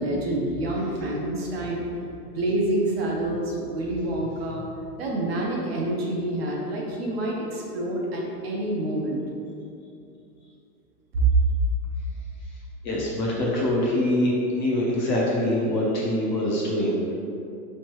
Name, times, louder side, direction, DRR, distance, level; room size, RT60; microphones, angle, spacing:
voice 1, 0.0-1.9 2.3-4.6 5.0-9.2 11.1-11.3, right 2 dB, 40° right, -2 dB, 0.5 m, -27 dB
voice 2, 12.8-17.1, left 1 dB, 30° left, -5 dB, 0.5 m, -24 dB
4.2 x 3.2 x 3.0 m, 2.6 s
hypercardioid pair, 155°, 49 cm